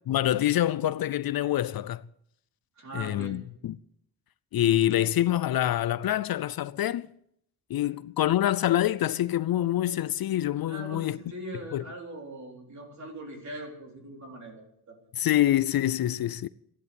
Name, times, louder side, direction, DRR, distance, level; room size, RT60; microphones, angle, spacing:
voice 1, 0.1-2.0 2.9-3.8 4.5-7.1 7.7-11.2 11.7-11.8 15.1-16.5, left 13 dB, 70° left, 0.5 m, -26 dB
voice 2, 2.8-3.4 7.8-7.9 10.7-15.0, right 1 dB, 45° right, 3.8 m, -41 dB
14.0 x 11.0 x 8.3 m
wide cardioid pair, 155°, 38 cm